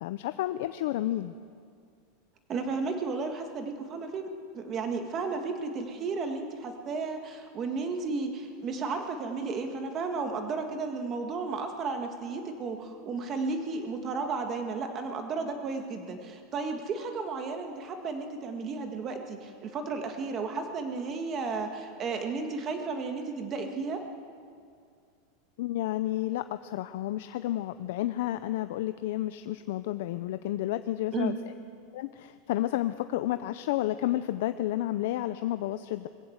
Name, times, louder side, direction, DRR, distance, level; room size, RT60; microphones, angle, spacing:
voice 1, 0.0-1.3 25.6-31.5 31.9-36.1, left 14 dB, 60° left, 11 dB, 0.6 m, -31 dB
voice 2, 2.5-4.3 4.5-24.0 31.1-31.4, right 4 dB, 25° right, 5 dB, 1.8 m, -33 dB
21.0 x 15.5 x 8.0 m, 2.2 s
supercardioid pair, 170°, 0 cm